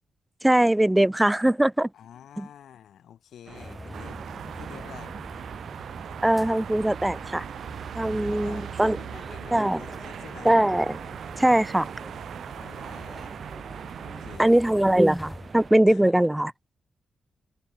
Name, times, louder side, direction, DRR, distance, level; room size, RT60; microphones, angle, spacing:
voice 1, 0.4-1.9 2.4-2.5 6.2-7.4 7.9-9.0 9.5-9.8 10.5-11.0 11.4-11.9 14.4-16.5, right 1 dB, 10° right, 0.4 m, -21 dB
voice 2, 1.9-5.2 8.1-10.6 12.6-13.3 14.0-14.6 15.8-16.3, left 10 dB, 90° left, 4.9 m, -48 dB
sound 1, 3.5-15.7, left 1 dB, 10° left, 0.8 m, -45 dB
sound 2, 3.5-15.8, right 5 dB, 45° right, 3.5 m, -45 dB
sound 3, 3.9-14.4, right 9 dB, 80° right, 2.6 m, -40 dB
wide cardioid pair, 120°, 0 cm